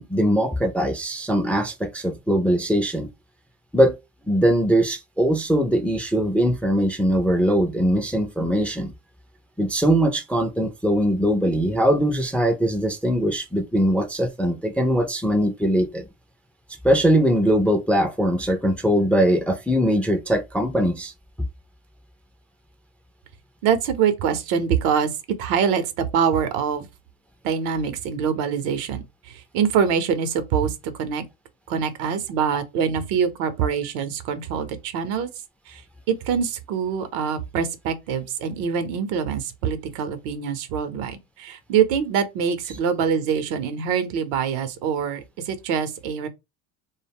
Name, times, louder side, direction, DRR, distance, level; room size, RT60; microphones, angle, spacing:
voice 1, 0.0-3.1 3.7-4.0 4.3-8.9 9.6-16.0 16.8-21.1, equal, 5° left, 0.3 m, -21 dB
voice 2, 23.6-25.1 25.4-26.9 27.4-31.3 31.7-35.3 35.7-35.8 36.1-46.3, right 7 dB, 75° right, 0.7 m, -24 dB
2.1 x 2.0 x 3.4 m
hypercardioid pair, 75°, 41 cm